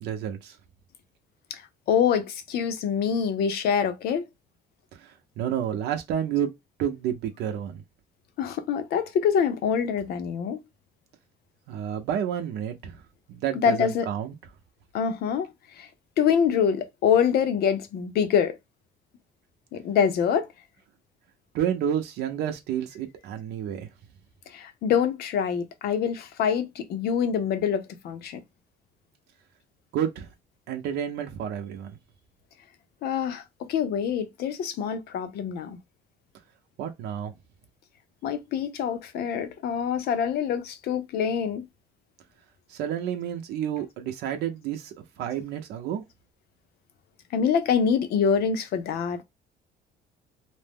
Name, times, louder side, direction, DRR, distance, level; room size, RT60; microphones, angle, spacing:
voice 1, 0.0-0.6 5.0-6.5 6.8-7.8 11.7-13.0 13.3-14.3 21.5-23.9 29.9-30.3 30.7-32.0 36.8-37.3 42.7-46.0, right 9 dB, 80° right, 0.6 m, -30 dB
voice 2, 1.9-4.2 8.4-10.6 13.6-14.1 14.9-15.5 15.8-15.9 16.2-18.6 19.7-20.5 24.5-28.4 33.0-35.8 38.2-41.6 47.3-49.2, left 7 dB, 70° left, 0.7 m, -25 dB
2.6 x 2.1 x 3.4 m
cardioid pair, 110°, 17 cm